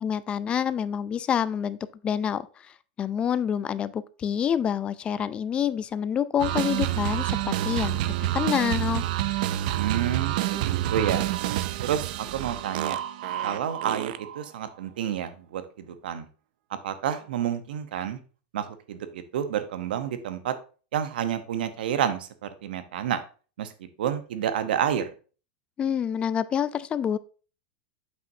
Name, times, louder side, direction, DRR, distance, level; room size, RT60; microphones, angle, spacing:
voice 1, 0.0-1.8 2.0-2.5 3.0-9.0 9.3-9.5 25.8-27.2, left 8 dB, 20° left, 16 dB, 0.3 m, -27 dB
sound 1, 6.4-14.5, right 14 dB, 65° right, 0.4 m, -28 dB
voice 2, 9.8-11.2 11.8-13.0 13.4-16.3 16.8-18.2 18.5-20.5 20.9-23.2 23.6-25.1, right 9 dB, 85° right, 10 dB, 0.8 m, -29 dB
7.8 x 5.7 x 2.7 m, 0.37 s
supercardioid pair, 150°, 5 cm